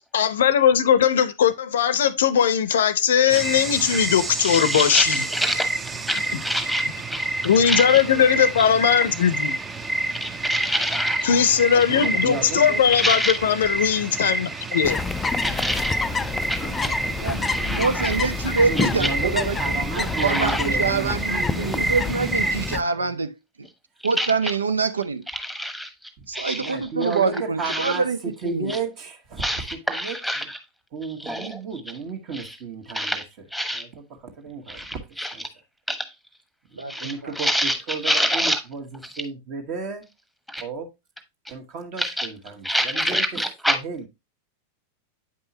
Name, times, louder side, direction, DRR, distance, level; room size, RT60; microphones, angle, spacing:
voice 1, 0.1-5.2 6.3-6.4 7.4-9.6 11.2-15.0, left 8 dB, 60° left, 0.6 m, -19 dB
sound 1, 3.3-22.8, right 2 dB, 15° right, 0.6 m, -29 dB
voice 2, 4.4-5.7 6.1-7.3 7.6-8.0 10.1-11.4 12.9-13.4 15.4-15.9 16.5-16.9 17.4-18.1 19.0-19.1 20.1-20.6 24.2-24.3 25.4-25.9 26.3-26.7 27.6-28.0 29.4-30.6 31.2-31.6 32.3-32.6 32.9-33.3 33.5-33.8 34.7-35.3 35.9-36.1 36.9-37.8 38.0-38.6 40.5-40.6 42.0-42.3 42.6-43.8, equal, ahead, 1.2 m, -26 dB
voice 3, 11.7-12.9 15.4-17.8 18.6-21.9 22.9-23.2 26.2-26.3 26.6-29.4 29.7-30.5 30.9-33.2 33.7-35.0 35.3-35.4 36.7-40.1 40.6-40.9 41.5-43.2 43.7-44.0, right 4 dB, 40° right, 1.4 m, -34 dB
sound 2, 14.8-22.8, left 5 dB, 15° left, 0.3 m, -28 dB
voice 4, 17.2-23.3 24.0-25.2 26.3-28.9 36.8-37.3, right 4 dB, 75° right, 0.4 m, -25 dB
8.7 x 5.3 x 2.8 m
figure-of-eight pair, 90°, 0 cm